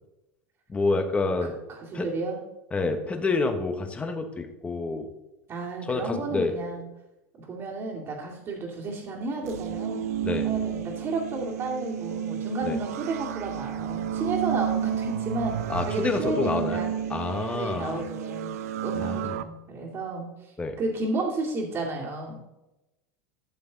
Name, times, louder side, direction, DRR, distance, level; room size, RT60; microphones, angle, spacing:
voice 1, 0.7-1.5 1.9-2.1 2.7-5.1 5.9-6.5 10.2-10.5 12.6-12.8 15.7-18.0 18.9-19.3 20.6-20.8, left 3 dB, 15° left, 6 dB, 1.3 m, -28 dB
voice 2, 1.7-2.4 5.5-6.8 7.4-10.1 10.4-16.9 17.5-18.5 18.8-22.4, right 3 dB, 35° right, -5 dB, 2.4 m, -32 dB
sound 1, 9.4-19.4, right 9 dB, 85° right, 0.7 m, -31 dB
14.0 x 6.9 x 4.0 m, 0.98 s
supercardioid pair, 135°, 8 cm